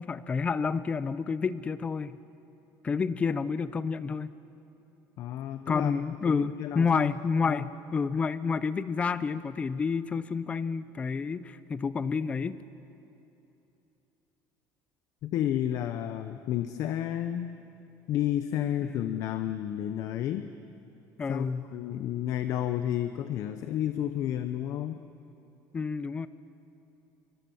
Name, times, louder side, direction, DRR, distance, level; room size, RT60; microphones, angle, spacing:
voice 1, 0.0-2.2 2.8-4.3 5.7-12.6 18.8-19.2 21.2-21.7 25.7-26.3, left 5 dB, 15° left, 15 dB, 0.5 m, -29 dB
voice 2, 5.2-7.1 7.4-7.7 15.2-17.5 18.1-20.5 21.3-25.0, left 11 dB, 45° left, 10 dB, 0.8 m, -31 dB
28.5 x 23.5 x 7.1 m, 2.9 s
cardioid pair, 180°, 7 cm